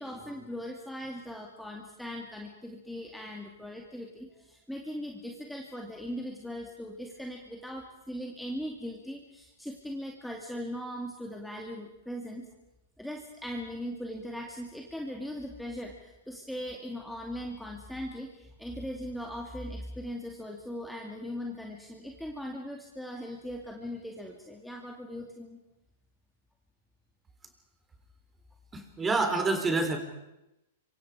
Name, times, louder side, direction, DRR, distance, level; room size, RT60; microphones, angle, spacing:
voice 1, 0.0-12.5 13.0-25.6, equal, ahead, 0 dB, 2.5 m, -39 dB
voice 2, 28.7-30.0, right 3 dB, 15° right, 6 dB, 3.8 m, -27 dB
26.5 x 24.5 x 5.0 m, 0.91 s
hypercardioid pair, 125°, 0 cm